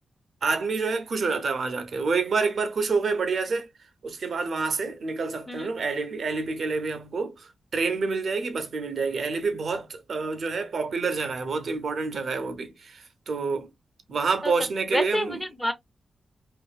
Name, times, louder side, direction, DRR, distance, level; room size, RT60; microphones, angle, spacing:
voice 1, 0.4-3.7 4.0-13.7 14.1-15.4, right 4 dB, 55° right, 0.5 m, -28 dB
voice 2, 14.9-15.7, equal, 5° left, 0.5 m, -28 dB
2.5 x 2.4 x 2.3 m
wide cardioid pair, 140°, 0 cm